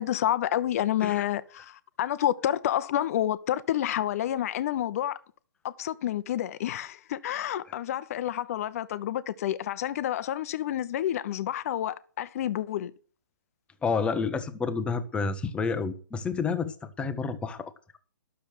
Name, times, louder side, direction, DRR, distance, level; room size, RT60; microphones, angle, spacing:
voice 1, 0.0-5.2 5.6-12.9, left 11 dB, 45° left, 0.8 m, -29 dB
voice 2, 13.8-17.7, left 5 dB, 10° left, 0.9 m, -29 dB
12.0 x 7.0 x 6.2 m
hypercardioid pair, 135°, 11 cm